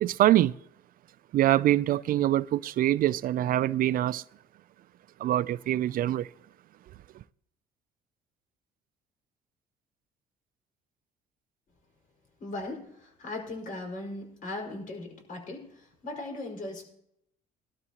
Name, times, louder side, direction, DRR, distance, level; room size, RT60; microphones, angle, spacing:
voice 1, 0.0-0.5 1.3-4.2 5.2-6.3, right 13 dB, 60° right, 0.4 m, -24 dB
voice 2, 12.4-16.8, left 2 dB, 50° left, 5.4 m, -38 dB
20.5 x 12.5 x 3.0 m
cardioid pair, 110°, 17 cm